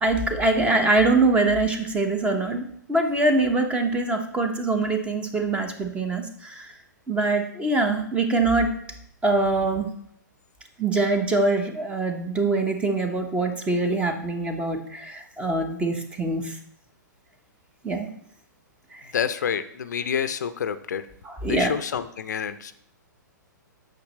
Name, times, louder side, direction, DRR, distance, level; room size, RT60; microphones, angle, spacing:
voice 1, 0.0-6.7 7.1-8.7 9.2-9.9 10.8-16.6 17.8-18.1 18.9-19.0 21.2-21.7, right 2 dB, 10° right, 6 dB, 0.8 m, -23 dB
voice 2, 19.1-21.0 21.5-22.8, left 7 dB, 60° left, 12 dB, 0.5 m, -28 dB
8.6 x 5.8 x 3.1 m, 0.68 s
figure-of-eight pair, 115°, 10 cm